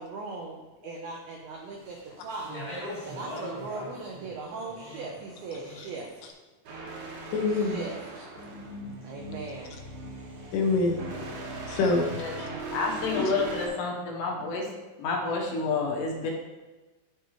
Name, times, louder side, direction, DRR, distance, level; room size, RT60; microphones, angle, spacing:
voice 1, 0.0-2.5 3.0-6.1 7.5-8.3 9.0-9.7, right 3 dB, 85° right, 0 dB, 2.1 m, -39 dB
Speech, 1.7-6.1, left 1 dB, 35° right, 0.4 m, -41 dB
sound 1, 6.7-13.7, right 2 dB, 65° right, 1.9 m, -39 dB
voice 2, 7.3-7.8 8.4-8.9 9.2-9.4 10.0-10.2 10.5-11.0 11.7-12.5 13.1-13.2, left 3 dB, 90° left, 2 dB, 3.5 m, -27 dB
voice 3, 12.7-14.7 15.0-16.3, left 3 dB, 70° left, -1 dB, 3.0 m, -29 dB
13.5 x 4.7 x 3.1 m, 1.2 s
omnidirectional pair, 5.5 m